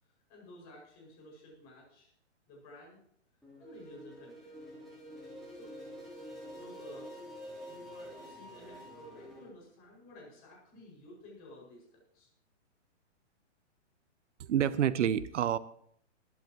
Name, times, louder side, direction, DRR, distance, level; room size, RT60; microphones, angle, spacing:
voice 1, 0.0-2.1 2.5-3.0 3.6-4.6 5.5-5.7 6.3-7.1 7.7-12.3, left 1 dB, 25° left, -2 dB, 5.9 m, -53 dB
sound 1, 3.4-9.4, equal, ahead, 3.9 m, -47 dB
voice 2, 14.4-15.6, right 10 dB, 80° right, 17 dB, 0.8 m, -28 dB
21.0 x 11.0 x 3.0 m, 0.67 s
hypercardioid pair, 170°, 36 cm